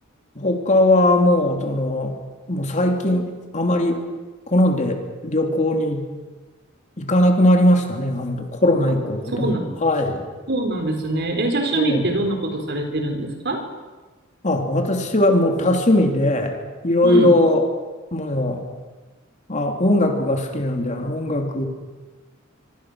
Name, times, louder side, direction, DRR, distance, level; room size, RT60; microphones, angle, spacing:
voice 1, 0.4-2.1 2.5-3.3 3.5-4.0 4.5-6.1 7.0-9.5 9.8-10.3 11.7-12.0 14.4-16.6 16.8-17.6 18.1-18.6 19.5-21.7, left 1 dB, 35° left, 3 dB, 3.0 m, -19 dB
voice 2, 9.3-9.7 10.5-13.6 17.0-17.3, right 2 dB, 55° right, 5 dB, 4.2 m, -23 dB
25.0 x 25.0 x 6.4 m, 1.3 s
head